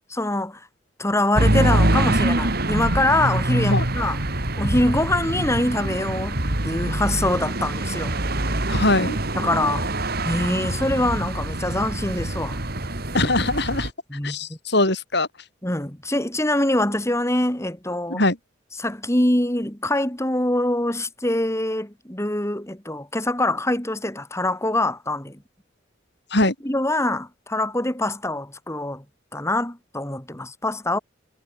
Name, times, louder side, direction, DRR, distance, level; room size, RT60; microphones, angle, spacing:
voice 1, 0.1-0.6 1.0-4.2 4.6-8.2 9.4-9.8 10.2-12.6 14.1-14.4 15.6-18.2 18.8-25.4 26.6-29.0 29.3-31.0, left 1 dB, 15° left, 3.3 m, -24 dB
sound 1, 1.3-13.9, right 1 dB, 55° right, 3.4 m, -24 dB
voice 2, 8.7-9.2 13.1-13.9 14.2-15.3 18.1-18.4 26.3-26.5, left 2 dB, 60° left, 7.0 m, -21 dB
head